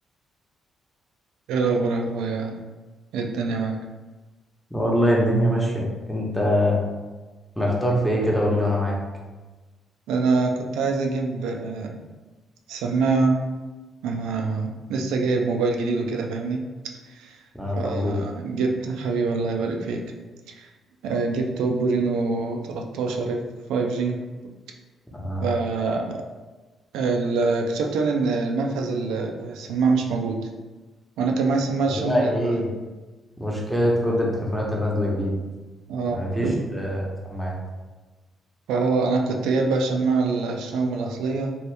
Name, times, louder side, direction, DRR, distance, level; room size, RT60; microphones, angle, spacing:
voice 1, 1.5-2.6 3.1-3.8 10.1-11.9 12.7-13.4 14.0-16.6 17.1-17.4 17.8-20.0 20.6-20.7 21.0-23.4 23.7-24.2 25.4-26.2 26.9-30.4 31.2-32.6 35.9-36.8 38.7-41.6, right 4 dB, 90° right, 2 dB, 0.4 m, -25 dB
voice 2, 4.7-6.8 7.6-9.0 17.5-18.2 25.1-25.4 31.9-32.7 33.4-35.3 36.1-37.6, equal, 5° left, -3 dB, 0.9 m, -23 dB
2.8 x 2.6 x 3.3 m, 1.2 s
cardioid pair, 90°, 0 cm